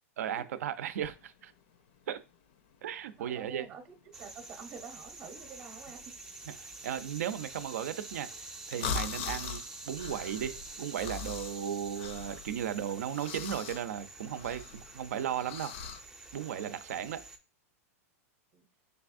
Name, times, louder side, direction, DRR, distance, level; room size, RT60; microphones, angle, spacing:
voice 1, 0.2-1.5 2.1-2.2 2.8-3.7 6.6-8.3 8.7-15.7 16.3-17.2, right 9 dB, 80° right, 0.6 m, -36 dB
sound 1, 0.9-16.0, left 6 dB, 50° left, 0.5 m, -42 dB
voice 2, 3.2-6.2 18.5-18.6, right 6 dB, 25° right, 0.8 m, -47 dB
sound 2, 4.1-17.4, right 3 dB, 5° right, 0.4 m, -47 dB
5.3 x 3.4 x 2.5 m
supercardioid pair, 170°, 8 cm